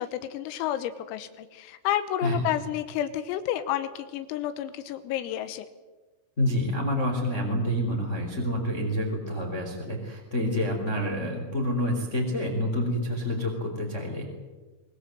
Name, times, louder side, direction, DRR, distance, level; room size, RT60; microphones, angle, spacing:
voice 1, 0.0-5.7, left 12 dB, 90° left, 10 dB, 3.8 m, -30 dB
voice 2, 2.2-2.6 6.4-14.3, equal, 15° left, 1 dB, 3.0 m, -28 dB
24.0 x 20.5 x 7.8 m, 1.3 s
omnidirectional pair, 5.9 m